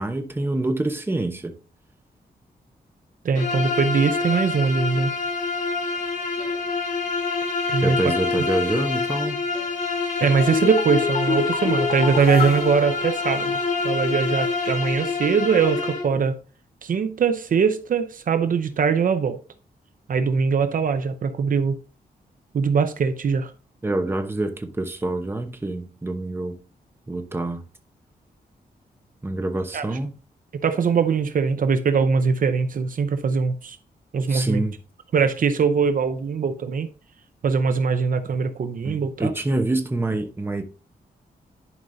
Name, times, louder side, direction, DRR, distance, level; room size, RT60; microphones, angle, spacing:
voice 1, 0.0-1.6 7.8-9.4 23.8-26.6 27.1-27.6 29.2-30.1 34.3-34.7 38.8-40.6, right 2 dB, 15° right, 0.9 m, -26 dB
voice 2, 3.2-5.1 7.7-8.0 10.2-13.6 13.8-16.4 16.8-19.4 20.1-21.8 22.5-23.5 29.7-29.9 30.6-33.8 34.1-34.6 35.1-36.9 37.4-39.3, right 5 dB, 60° right, 0.7 m, -21 dB
Bowed string instrument, 3.3-16.1, left 4 dB, 50° left, 1.6 m, -26 dB
sound 1, 10.4-13.8 14.1-14.2, left 4 dB, 70° left, 1.2 m, -28 dB
11.0 x 5.3 x 2.7 m
wide cardioid pair, 135°, 16 cm